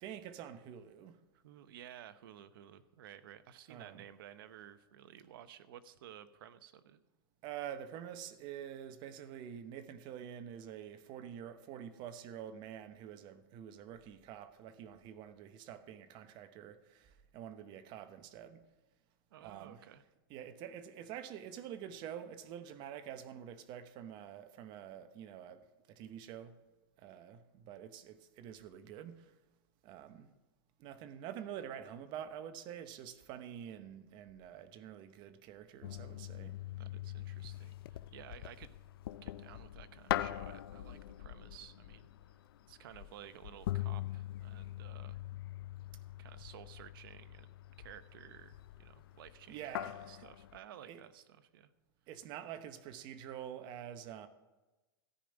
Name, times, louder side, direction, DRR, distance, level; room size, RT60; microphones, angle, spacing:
voice 1, 0.0-1.2 3.7-4.0 7.4-18.6 19.4-19.9 20.3-26.6 27.0-29.3 29.8-30.3 30.8-36.6 49.5-50.3 50.9-51.0 52.1-54.3, right 9 dB, 35° right, 0.9 m, -47 dB
voice 2, 1.3-7.0 19.3-20.0 36.8-38.7 39.2-42.1 42.7-45.2 46.2-49.7 49.9-51.7, right 10 dB, 65° right, 0.9 m, -54 dB
sound 1, 35.8-50.6, left 14 dB, 75° left, 0.5 m, -43 dB
14.0 x 5.1 x 9.0 m
hypercardioid pair, 140°, 13 cm